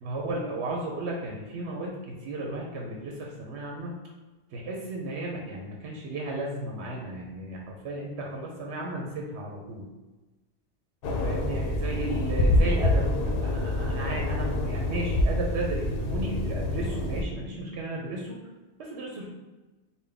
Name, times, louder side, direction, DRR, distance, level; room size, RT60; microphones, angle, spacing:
voice 1, 0.0-3.9 4.5-9.9 11.2-18.4 18.8-19.3, right 2 dB, 90° right, -1 dB, 1.0 m, -34 dB
sound 1, 11.0-17.2, left 1 dB, 65° left, 0.7 m, -26 dB
3.9 x 2.3 x 3.4 m, 1.2 s
omnidirectional pair, 1.1 m